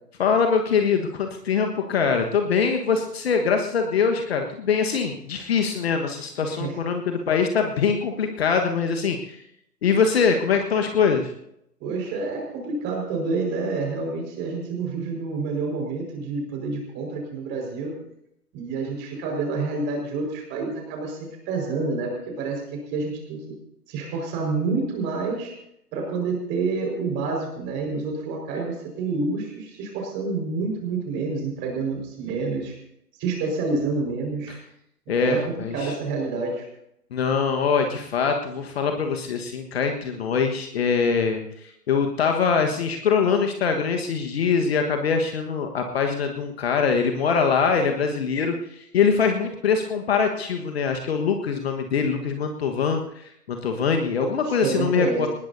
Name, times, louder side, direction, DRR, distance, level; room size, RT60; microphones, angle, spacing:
voice 1, 0.2-9.4 9.8-11.3 34.5-34.6 35.1-35.9 37.1-53.0 53.5-55.3, left 5 dB, 40° left, 4 dB, 1.5 m, -23 dB
voice 2, 6.4-6.8 11.8-17.9 18.5-21.2 21.5-23.5 23.9-25.5 25.9-32.8 33.2-34.5 35.2-36.7 54.4-55.3, right 3 dB, 20° right, 1 dB, 5.1 m, -28 dB
21.0 x 19.5 x 2.8 m, 0.79 s
figure-of-eight pair, 130°, 48 cm